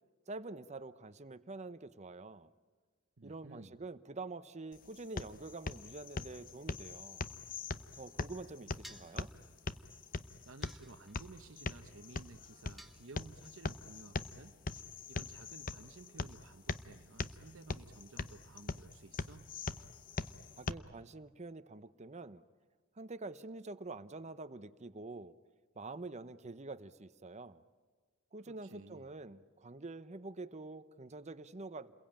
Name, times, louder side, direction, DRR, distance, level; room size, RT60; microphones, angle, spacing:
voice 1, 0.3-2.5 3.2-7.3 7.9-9.3 20.6-22.4 23.0-25.3 25.8-27.6 28.3-31.9, right 3 dB, 35° right, 13 dB, 0.8 m, -46 dB
voice 2, 3.2-3.8 10.5-14.5 15.1-19.5 28.5-29.1, right 3 dB, 70° right, 7 dB, 1.0 m, -55 dB
sound 1, 4.7-20.7, left 3 dB, 45° left, 0.8 m, -42 dB
sound 2, 8.8-9.2 10.6-11.3 12.8-13.5, equal, ahead, 1.5 m, -55 dB
29.5 x 22.0 x 8.9 m, 1.5 s
head